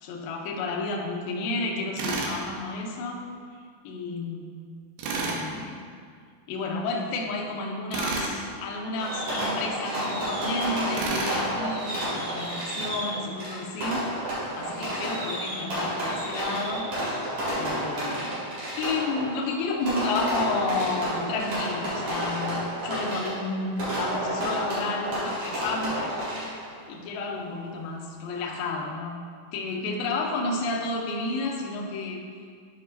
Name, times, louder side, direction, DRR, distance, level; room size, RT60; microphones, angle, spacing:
voice 1, 0.0-3.3 3.8-4.5 5.1-5.8 6.5-14.1 14.5-17.0 17.6-18.5 18.7-26.2 26.9-29.2 29.5-32.3, left 3 dB, 80° left, -1 dB, 2.2 m, -31 dB
Tools, 2.0-2.4 5.0-5.4 7.9-8.3 10.9-11.4, right 3 dB, 75° right, 2.8 m, -29 dB
Fireworks, 9.0-26.7, equal, 50° right, 2.9 m, -31 dB
11.5 x 4.7 x 2.7 m, 2.1 s
omnidirectional pair, 5.1 m